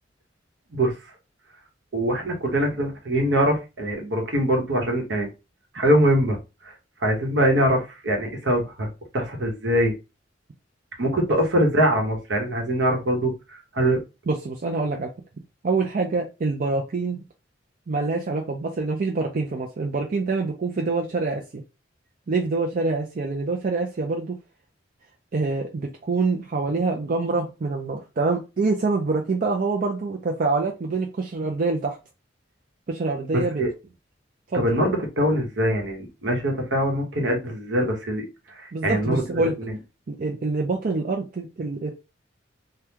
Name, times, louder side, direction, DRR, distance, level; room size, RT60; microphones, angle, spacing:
voice 1, 1.9-5.3 5.7-6.4 6.6-6.7 7.0-8.9 9.1-9.9 11.0-14.0 33.3-33.7 34.5-39.8, equal, 70° right, 1.0 m, -23 dB
voice 2, 14.3-15.1 15.6-17.2 17.9-21.6 22.3-24.3 25.3-32.0 32.9-33.6 34.5-34.7 38.7-39.6 40.1-41.9, right 3 dB, 50° right, 0.4 m, -25 dB
3.5 x 2.3 x 2.8 m
head